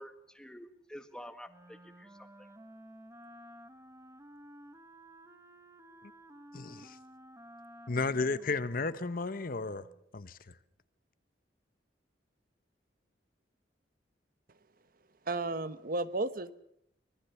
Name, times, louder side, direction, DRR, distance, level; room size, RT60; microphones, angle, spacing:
voice 1, 0.0-2.3, equal, 5° left, 1.6 m, -49 dB
Wind instrument woodwind instrument, 1.5-10.0, right 1 dB, 15° right, 1.6 m, -54 dB
voice 2, 6.5-7.0 7.9-9.9 10.1-10.4, left 3 dB, 50° left, 0.9 m, -33 dB
voice 3, 15.3-16.5, right 2 dB, 50° right, 1.0 m, -33 dB
25.0 x 20.0 x 7.0 m
head